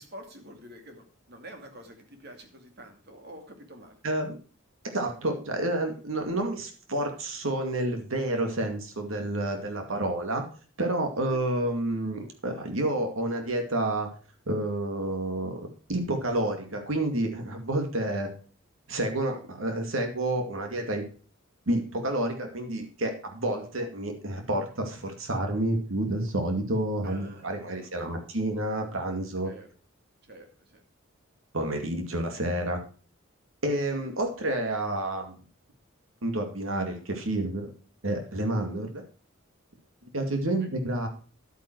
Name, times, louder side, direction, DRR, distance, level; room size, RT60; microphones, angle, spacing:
voice 1, 0.0-4.0 11.3-11.4 27.0-28.3 29.4-29.7 30.2-30.8 33.9-34.0 40.6-40.7, right 1 dB, 55° right, 4 dB, 2.5 m, -48 dB
voice 2, 4.0-4.4 4.9-10.4 10.8-14.1 14.5-18.3 18.9-21.0 21.7-29.5 31.5-32.8 33.6-35.3 36.2-37.7 38.0-39.0 40.1-41.1, right 1 dB, 90° right, 5 dB, 2.3 m, -29 dB
11.0 x 9.0 x 4.6 m, 0.39 s
head